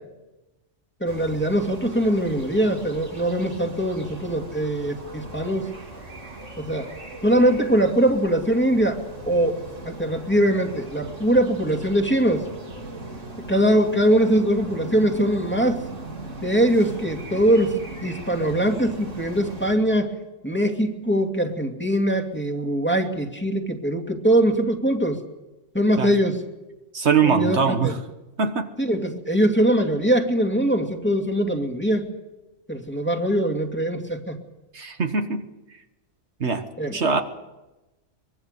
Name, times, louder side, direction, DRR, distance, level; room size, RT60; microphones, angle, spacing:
voice 1, 1.0-5.7 6.6-6.9 7.2-9.0 9.3-9.6 9.9-12.4 13.5-15.8 16.4-20.1 20.4-25.2 25.7-26.4 27.2-27.9 28.8-32.1 32.7-34.4 36.8-37.0, right 1 dB, 10° left, 2 dB, 2.5 m, -22 dB
sound 1, 1.0-19.8, right 2 dB, 85° right, 3.9 m, -39 dB
voice 2, 26.9-28.0 28.4-28.7 34.7-35.4 36.4-36.7 36.9-37.2, right 5 dB, 65° right, 6 dB, 1.6 m, -22 dB
24.0 x 23.0 x 6.7 m, 1.0 s
omnidirectional pair, 1.2 m